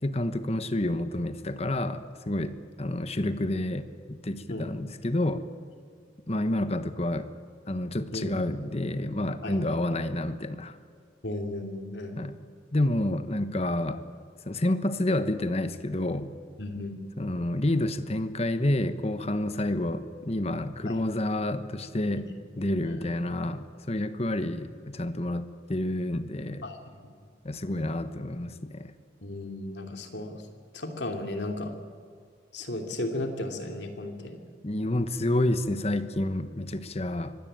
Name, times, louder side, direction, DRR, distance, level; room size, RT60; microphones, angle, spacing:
voice 1, 0.0-5.4 6.3-7.3 7.7-10.8 12.2-12.3 12.7-14.0 14.4-16.3 17.2-22.2 22.6-26.6 27.4-28.9 34.6-37.4, left 1 dB, 35° left, 10 dB, 1.1 m, -29 dB
voice 2, 9.4-9.8 11.2-12.2 16.6-17.0 20.9-21.0 22.0-22.2 22.8-23.1 26.6-27.1 29.2-30.4 30.7-31.7 32.5-34.4, left 1 dB, 65° left, 4 dB, 2.9 m, -35 dB
24.5 x 16.5 x 9.0 m, 2.1 s
head